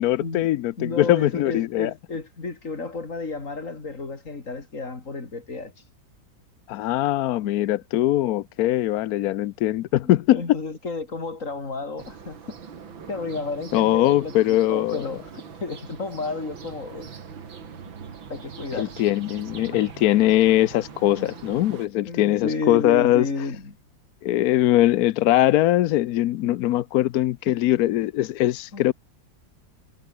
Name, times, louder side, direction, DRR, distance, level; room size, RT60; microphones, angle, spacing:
voice 1, 0.0-1.9 6.7-10.6 13.7-15.0 18.8-23.3 24.2-28.9, left 14 dB, 70° left, 0.9 m, -21 dB
voice 2, 0.8-5.7 10.0-12.6 13.1-17.1 18.3-18.9 21.2-21.4 22.0-23.8 27.5-27.6 28.7-28.8, left 3 dB, 40° left, 3.6 m, -32 dB
sound 1, 12.0-21.9, right 6 dB, 90° right, 3.0 m, -42 dB
omnidirectional pair, 2.1 m